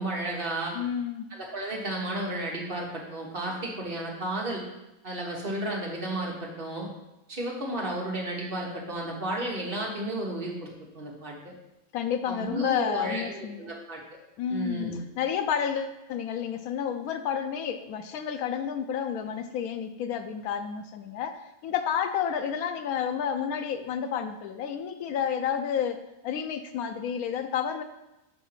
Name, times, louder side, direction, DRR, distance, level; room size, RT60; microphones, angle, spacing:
voice 1, 0.0-0.8 1.3-4.6 5.0-6.9 7.3-11.5 12.3-14.2 14.5-15.0, right 1 dB, 40° right, -2 dB, 1.5 m, -33 dB
voice 2, 0.7-1.3 11.9-13.7 14.4-27.8, left 8 dB, 85° left, 8 dB, 1.1 m, -30 dB
6.8 x 3.6 x 5.8 m, 0.95 s
omnidirectional pair, 1.5 m